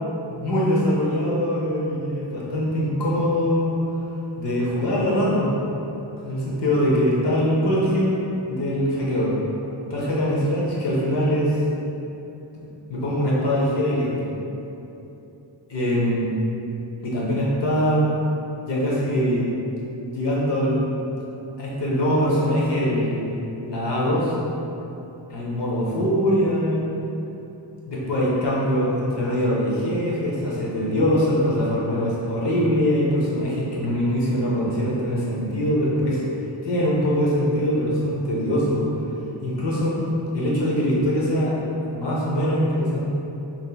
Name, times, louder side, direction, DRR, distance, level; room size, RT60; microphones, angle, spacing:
voice 1, 0.3-3.8 4.4-5.5 6.2-9.4 9.9-11.6 12.9-14.3 15.7-16.3 17.0-18.1 18.6-19.5 20.1-20.8 21.6-23.3 23.6-24.3 25.3-26.8 27.9-36.2 36.6-38.8 39.4-40.0 40.3-41.6 41.9-43.2, equal, 65° left, -6 dB, 0.8 m, -22 dB
2.9 x 2.7 x 2.2 m, 2.9 s
wide cardioid pair, 95°, 45 cm